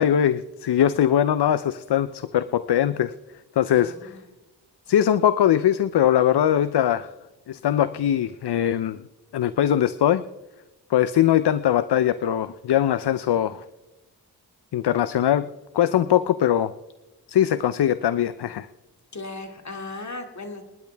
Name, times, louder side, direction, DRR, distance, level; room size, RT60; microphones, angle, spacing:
voice 1, 0.0-3.1 3.6-4.1 4.9-7.1 7.5-9.0 9.3-10.2 10.9-13.6 14.7-15.5 15.7-16.7 17.3-18.7, left 10 dB, 75° left, 14 dB, 0.6 m, -21 dB
voice 2, 3.7-4.2 19.1-20.6, left 2 dB, 45° left, 3 dB, 2.4 m, -36 dB
28.5 x 10.5 x 3.4 m, 1.0 s
cardioid pair, 65°, 41 cm